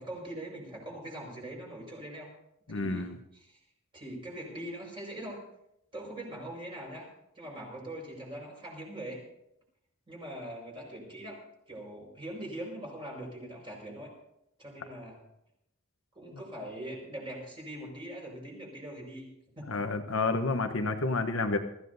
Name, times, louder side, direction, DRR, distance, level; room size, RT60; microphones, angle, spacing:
voice 1, 0.0-2.3 2.7-3.6 3.9-5.4 5.9-7.1 7.3-9.2 10.1-11.4 11.7-14.1 14.6-15.2 16.1-19.3 19.6-19.8, right 1 dB, 25° right, -2 dB, 5.3 m, -42 dB
voice 2, 2.7-3.2 19.7-21.6, left 3 dB, 65° left, 6 dB, 1.0 m, -29 dB
23.0 x 14.5 x 2.7 m, 0.79 s
head